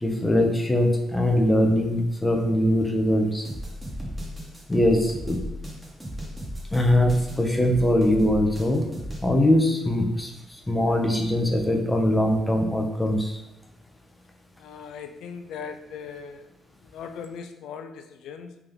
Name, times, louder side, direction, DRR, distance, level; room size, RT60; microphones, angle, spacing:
voice 1, 0.0-3.5 4.7-5.4 6.7-8.9 9.2-13.4, left 1 dB, 15° left, 2 dB, 0.7 m, -22 dB
sound 1, 3.4-9.3, equal, 15° right, 1.2 m, -35 dB
voice 2, 14.6-16.4 16.9-18.6, left 6 dB, 80° left, 7 dB, 0.4 m, -39 dB
3.4 x 2.8 x 3.8 m, 0.94 s
cardioid pair, 90°, 0 cm